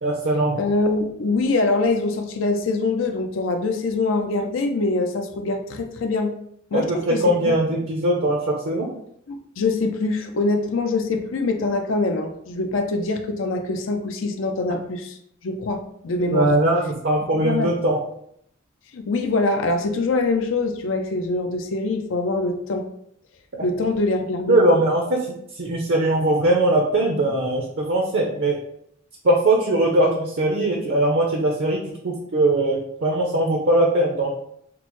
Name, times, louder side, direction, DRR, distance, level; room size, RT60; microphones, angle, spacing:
voice 1, 0.0-0.6 6.7-8.9 16.3-18.0 23.5-23.6 24.5-25.2 25.5-28.6 29.2-31.8 32.0-34.4, right 1 dB, 60° right, -1 dB, 0.6 m, -20 dB
voice 2, 0.5-6.3 6.7-7.4 9.3-15.2 15.4-16.5 17.3-17.7 18.9-22.8 23.6-24.6, left 3 dB, 75° left, 5 dB, 0.5 m, -24 dB
5.8 x 2.0 x 3.0 m, 0.71 s
head